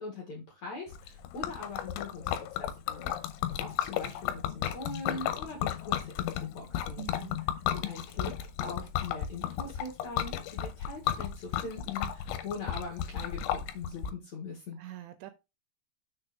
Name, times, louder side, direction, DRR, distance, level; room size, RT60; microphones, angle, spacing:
voice 1, 0.0-7.1 7.7-14.8, left 3 dB, 55° left, 2.1 m, -42 dB
Liquid, 0.9-14.1, left 11 dB, 85° left, 3.1 m, -34 dB
voice 2, 7.0-7.4 14.8-15.3, right 14 dB, 85° right, 2.6 m, -44 dB
6.6 x 4.4 x 5.1 m
omnidirectional pair, 5.4 m